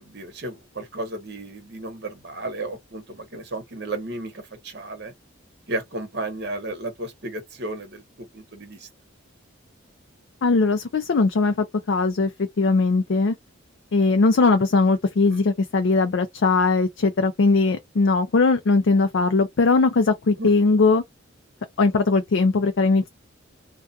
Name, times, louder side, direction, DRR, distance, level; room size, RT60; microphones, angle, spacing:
voice 1, 0.0-5.1 5.7-8.9 15.3-15.4 20.4-20.5, right 2 dB, 55° right, 1.0 m, -33 dB
voice 2, 10.4-11.5 11.9-13.4 13.9-21.0 21.8-23.1, left 3 dB, 65° left, 0.4 m, -20 dB
2.4 x 2.3 x 2.6 m
head